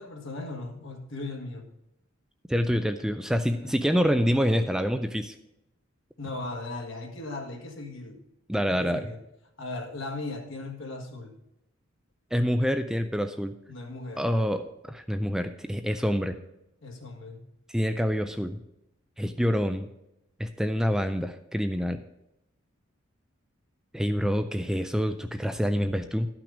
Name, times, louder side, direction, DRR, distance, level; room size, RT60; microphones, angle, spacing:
voice 1, 0.0-1.7 3.6-3.7 6.2-8.2 8.7-9.2 9.6-11.3 13.7-14.2 16.8-17.4, left 2 dB, 65° left, 2 dB, 1.7 m, -37 dB
voice 2, 2.5-5.3 8.5-9.1 12.3-13.6 14.2-16.4 17.7-18.6 19.2-19.9 20.4-22.0 23.9-26.3, equal, 5° right, 7 dB, 0.3 m, -26 dB
12.0 x 6.0 x 5.0 m, 0.85 s
head